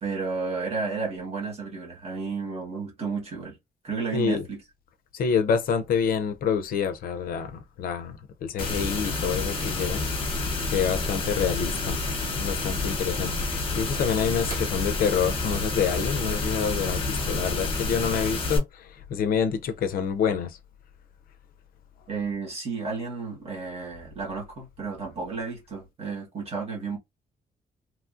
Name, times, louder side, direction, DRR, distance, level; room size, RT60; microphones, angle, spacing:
voice 1, 0.0-3.6 3.8-4.6 22.1-27.0, right 4 dB, 40° right, 1.3 m, -32 dB
voice 2, 4.1-4.4 5.1-10.1 10.7-12.0 12.4-20.6, left 7 dB, 65° left, 0.4 m, -27 dB
sound 1, 8.6-18.6, left 3 dB, 35° left, 0.8 m, -29 dB
Slam / Wood, 13.9-17.7 18.1-18.2, right 1 dB, 20° right, 1.0 m, -47 dB
2.9 x 2.4 x 2.4 m
cardioid pair, 170°, 16 cm